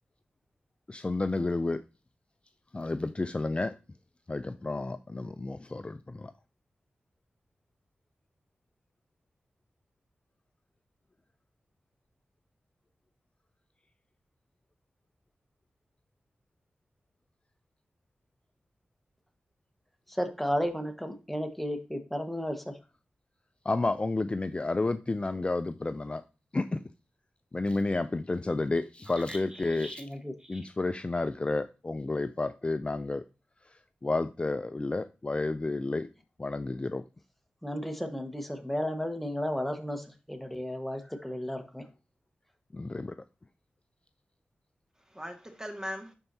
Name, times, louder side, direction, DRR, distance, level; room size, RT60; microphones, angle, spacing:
voice 1, 0.9-1.8 2.7-3.7 4.3-6.3 23.7-26.2 26.5-26.8 27.5-30.0 30.5-33.2 33.7-36.1 36.4-37.0 42.7-43.1, left 2 dB, 30° left, 0.4 m, -31 dB
voice 2, 20.1-22.8 30.0-30.3 37.6-41.9, equal, 5° left, 1.4 m, -33 dB
voice 3, 29.0-30.1 30.4-30.7 45.1-46.1, equal, 20° right, 1.8 m, -41 dB
11.0 x 4.4 x 2.8 m
cardioid pair, 45°, 4 cm